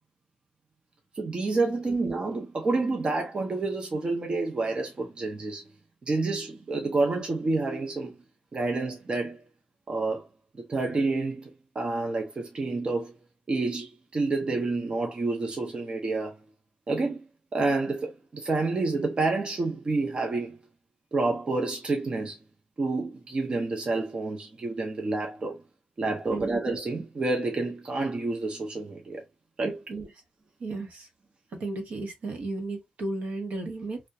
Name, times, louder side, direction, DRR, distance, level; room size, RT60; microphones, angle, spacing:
voice 1, 1.1-5.7 6.0-8.2 8.5-9.4 9.9-10.3 10.6-13.2 13.5-16.4 16.9-20.6 21.1-22.4 22.8-25.6 26.0-29.2 29.6-29.8, right 3 dB, 35° right, 0.5 m, -29 dB
voice 2, 30.6-31.1 31.5-34.0, right 2 dB, 70° right, 0.7 m, -34 dB
2.3 x 2.1 x 2.7 m
wide cardioid pair, 120°, 3 cm